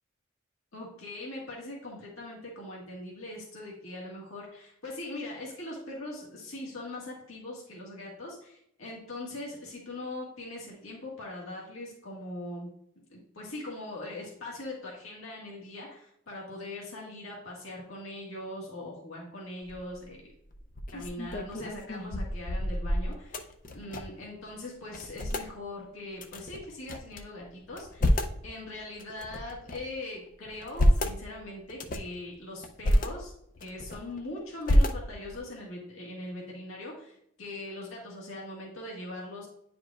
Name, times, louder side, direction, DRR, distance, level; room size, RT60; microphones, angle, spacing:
voice 1, 0.7-12.7 13.1-20.2 20.9-28.1 28.4-33.3 33.6-39.5, left 1 dB, 90° left, -4 dB, 1.8 m, -41 dB
sound 1, 19.6-20.0 20.5-24.3 24.5-24.6 24.9-25.5 26.2-27.2 27.7-28.4 29.0-29.9 30.5-31.2 31.7-32.2 32.6-33.1 33.6-34.2 34.6-35.4, equal, 40° left, 0.5 m, -28 dB
9.7 x 4.9 x 2.4 m, 0.75 s
head